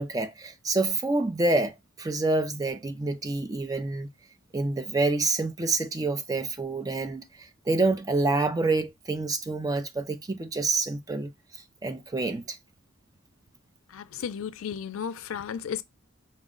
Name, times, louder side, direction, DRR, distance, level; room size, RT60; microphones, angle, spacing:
voice 1, 0.0-4.1 4.5-12.6, right 3 dB, 15° right, 0.4 m, -27 dB
voice 2, 13.9-15.8, left 7 dB, 80° left, 0.4 m, -34 dB
4.1 x 2.1 x 3.7 m
head